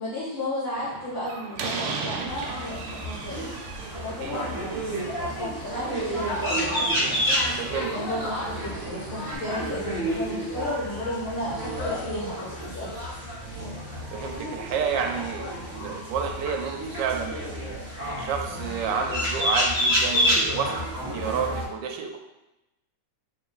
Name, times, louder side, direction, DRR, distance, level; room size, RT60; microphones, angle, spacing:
voice 1, 0.0-3.5 4.0-6.7 7.9-12.9, left 1 dB, 65° left, -11 dB, 2.1 m, -33 dB
Slam, 0.8-9.4, right 4 dB, 90° right, 1.4 m, -38 dB
sound 1, 2.3-21.6, equal, 15° right, 0.7 m, -29 dB
voice 2, 7.6-7.9 14.1-17.7 18.2-22.2, right 6 dB, 75° right, 3 dB, 1.2 m, -30 dB
4.6 x 3.4 x 2.3 m, 0.94 s
omnidirectional pair, 2.2 m